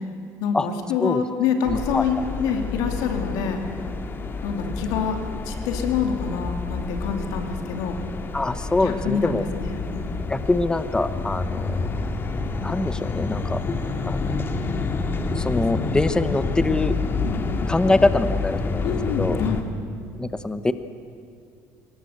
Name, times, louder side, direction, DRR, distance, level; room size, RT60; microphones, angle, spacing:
voice 1, 0.4-3.6 4.4-8.0 8.8-10.1 17.2-17.4 18.8-19.6, left 6 dB, 85° left, 5 dB, 2.7 m, -26 dB
sound 1, 1.7-19.6, left 3 dB, 35° left, 1.9 m, -28 dB
voice 2, 1.7-2.2 8.3-9.4 10.3-11.8 12.6-13.6 14.1-14.2 15.3-16.9 17.7-19.4 20.2-20.7, left 2 dB, 10° left, 12 dB, 0.9 m, -24 dB
23.0 x 19.0 x 8.1 m, 2.3 s
cardioid pair, 100°, 7 cm